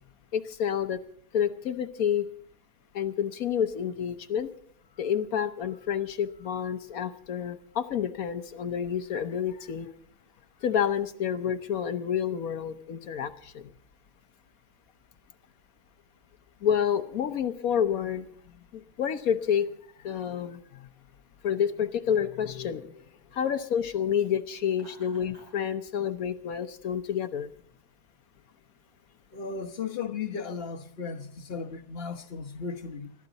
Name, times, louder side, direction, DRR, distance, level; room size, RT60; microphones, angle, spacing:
voice 1, 0.3-1.0 1.3-2.2 2.9-4.5 5.0-9.9 10.6-13.7 16.6-18.3 18.7-19.7 20.0-20.9 21.4-23.0 23.3-27.5, left 8 dB, 65° left, 1.2 m, -29 dB
Laughter, 24.7-25.6, left 1 dB, 65° right, 8.5 m, -54 dB
voice 2, 29.3-33.1, left 5 dB, 40° left, 1.2 m, -36 dB
21.0 x 13.5 x 4.0 m
omnidirectional pair, 1.7 m